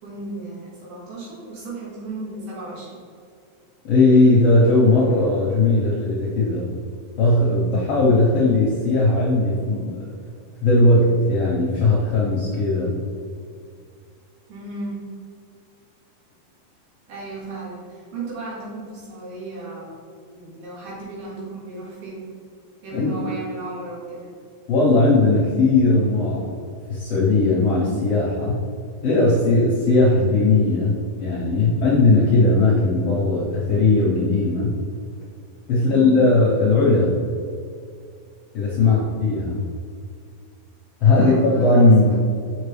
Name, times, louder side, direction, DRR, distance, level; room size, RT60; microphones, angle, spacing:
voice 1, 0.0-3.0 14.5-15.1 17.1-20.0 20.3-22.3 22.8-24.3 35.7-36.1 38.8-39.1 41.0-41.8 42.1-42.2, right 2 dB, 70° right, -5 dB, 3.3 m, -35 dB
voice 2, 3.8-6.7 7.2-10.0 10.6-13.0 22.9-23.1 24.7-26.5 26.9-28.6 29.0-30.9 31.2-34.8 35.7-37.2 38.5-39.6 41.0-42.2, left 2 dB, 65° left, -5 dB, 1.6 m, -18 dB
7.0 x 5.9 x 3.3 m, 2.3 s
omnidirectional pair, 4.0 m